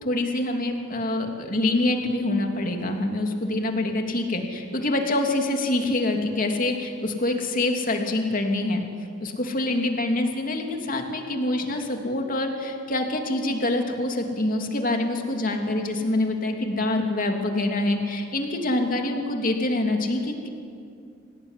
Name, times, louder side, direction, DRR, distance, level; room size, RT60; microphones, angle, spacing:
voice 1, 0.0-8.8 9.2-20.5, left 2 dB, 45° left, 3 dB, 3.0 m, -25 dB
26.5 x 18.5 x 10.0 m, 2.4 s
head